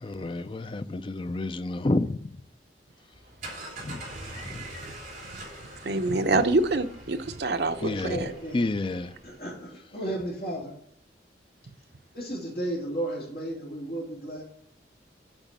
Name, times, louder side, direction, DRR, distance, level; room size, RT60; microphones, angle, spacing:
voice 1, 0.0-2.2 3.8-4.0 4.4-4.6 7.8-8.1 8.5-9.1, left 2 dB, 30° left, 0.4 m, -29 dB
sound 1, 3.1-9.5, right 1 dB, 45° right, 3.3 m, -43 dB
voice 2, 5.8-7.9 8.2-8.3, right 2 dB, 65° right, 0.7 m, -26 dB
voice 3, 7.7-8.7 9.2-10.7 12.1-14.4, right 1 dB, 55° left, 3.0 m, -34 dB
8.9 x 5.0 x 7.5 m
head